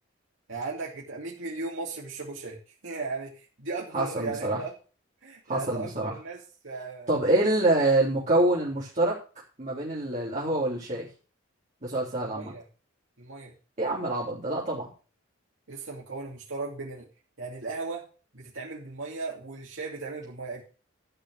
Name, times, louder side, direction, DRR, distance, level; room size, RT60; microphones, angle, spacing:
voice 1, 0.5-2.6 2.8-4.7 5.2-7.2 12.2-12.6 13.2-13.5 15.7-17.1 17.4-18.0 18.3-20.6, right 3 dB, 70° right, -3 dB, 2.7 m, -36 dB
voice 2, 3.9-4.6 5.5-6.1 7.1-9.2 9.6-11.1 11.8-12.5 13.8-14.9, right 2 dB, 40° right, -8 dB, 3.6 m, -26 dB
13.0 x 5.8 x 6.4 m, 0.36 s
head